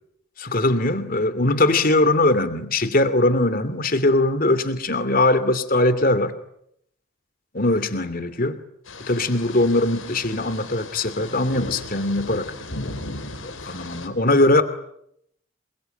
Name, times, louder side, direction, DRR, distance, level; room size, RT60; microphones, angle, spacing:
voice 1, 0.4-6.3 7.5-8.6 9.0-12.5 13.4-14.6, left 2 dB, 45° left, 12 dB, 2.7 m, -21 dB
sound 1, 8.9-14.1, left 2 dB, 80° left, 4.9 m, -36 dB
28.5 x 23.0 x 9.1 m, 0.75 s
head